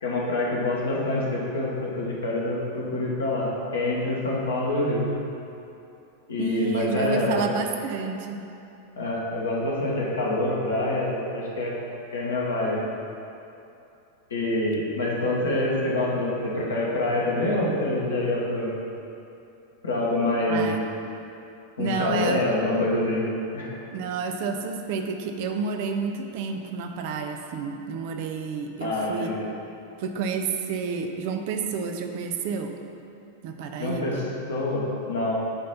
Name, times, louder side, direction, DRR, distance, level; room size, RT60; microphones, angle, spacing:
voice 1, 0.0-5.1 6.3-7.4 9.0-11.7 12.1-12.8 14.3-18.7 19.8-20.7 21.8-23.3 23.5-23.7 28.8-29.5 33.8-34.2 34.5-35.4, left 2 dB, 70° left, -4 dB, 1.5 m, -26 dB
voice 2, 6.4-8.4 20.5-20.8 21.8-22.4 23.9-29.3 30.0-32.8 33.4-34.3, right 5 dB, 50° right, 4 dB, 0.6 m, -30 dB
9.7 x 3.2 x 5.6 m, 2.8 s
figure-of-eight pair, 90°, 0 cm